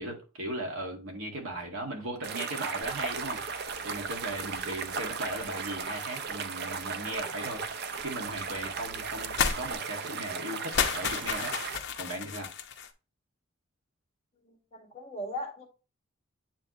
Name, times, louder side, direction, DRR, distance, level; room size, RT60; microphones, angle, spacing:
voice 1, 0.0-7.8 8.0-11.5 12.0-12.5, right 1 dB, 75° right, 1.9 m, -37 dB
sound 1, 2.2-11.8, right 5 dB, 50° right, 0.5 m, -36 dB
sound 2, 2.8-9.7, left 1 dB, 15° right, 1.1 m, -56 dB
sound 3, 9.4-9.6 9.9-10.0 10.6-12.9, left 7 dB, 55° left, 0.8 m, -31 dB
voice 2, 14.4-15.7, left 1 dB, 30° left, 1.7 m, -39 dB
8.9 x 3.5 x 3.0 m
head